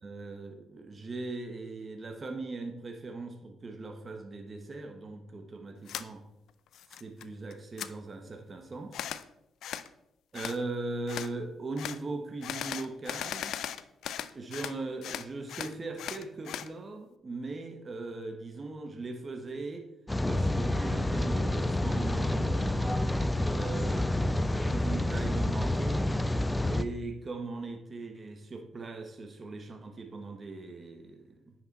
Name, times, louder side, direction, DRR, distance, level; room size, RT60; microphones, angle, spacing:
voice 1, 0.0-6.3 6.9-9.0 10.3-13.6 14.3-19.8 20.3-23.0 23.5-26.1 26.7-31.5, right 3 dB, 40° right, 5 dB, 1.2 m, -39 dB
sound 1, 5.9-6.1 6.5-7.2 7.5-7.9 8.9-9.2 9.6-9.9 10.3-10.6 11.1-11.3 11.8-12.0 12.4-14.8 15.0-16.7, left 10 dB, 75° left, 0.4 m, -38 dB
Rain, 20.1-26.8, left 1 dB, 15° left, 0.6 m, -28 dB
9.8 x 6.0 x 4.2 m, 0.88 s
supercardioid pair, 70°, 0 cm